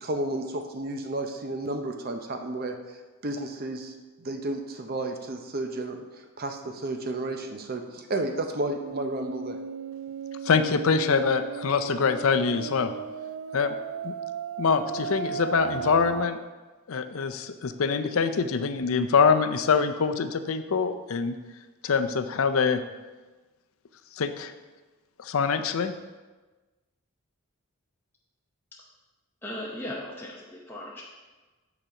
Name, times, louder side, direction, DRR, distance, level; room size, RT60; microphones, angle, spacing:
voice 1, 0.0-2.7 3.2-9.6, right 2 dB, 45° right, 5 dB, 0.6 m, -32 dB
sound 1, 8.8-16.3, right 6 dB, 80° right, 0.4 m, -35 dB
voice 2, 10.4-12.9 13.5-13.7 14.0-14.1 14.6-16.4 16.9-21.3 21.8-22.8 24.2-24.5 25.2-25.9, left 5 dB, 70° left, 9 dB, 0.5 m, -24 dB
voice 3, 29.4-31.0, left 1 dB, 10° left, -5 dB, 0.7 m, -37 dB
8.9 x 4.0 x 5.6 m, 1.2 s
head